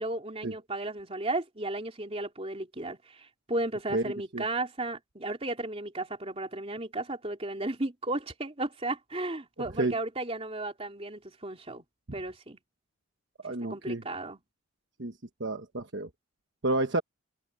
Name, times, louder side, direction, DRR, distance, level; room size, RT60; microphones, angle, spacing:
voice 1, 0.0-11.8 12.1-12.6 13.5-14.4, right 2 dB, 30° right, 3.2 m, -34 dB
voice 2, 3.9-4.4 9.8-10.0 13.4-14.0 15.0-15.1 15.4-16.1 16.6-17.0, right 2 dB, 55° right, 1.2 m, -30 dB
open air
head